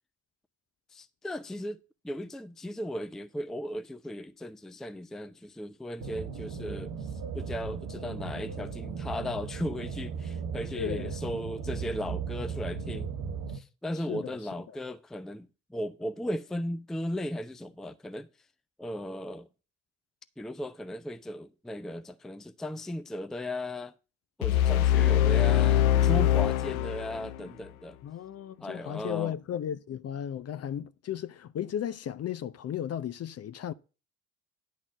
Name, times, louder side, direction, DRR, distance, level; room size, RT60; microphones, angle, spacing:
voice 1, 0.9-1.8 2.0-7.1 7.3-13.1 13.5-18.3 18.8-19.5 20.4-23.9 24.4-28.0 28.6-29.3, left 1 dB, ahead, 0.5 m, -36 dB
sound 1, 6.0-13.6, right 5 dB, 55° right, 1.1 m, -36 dB
voice 2, 10.8-11.2 14.1-14.4 14.7-14.8 28.0-33.7, left 10 dB, 35° left, 0.7 m, -35 dB
sound 2, 24.4-27.5, left 12 dB, 80° left, 0.6 m, -23 dB
10.5 x 4.0 x 7.5 m
hypercardioid pair, 55°, 42 cm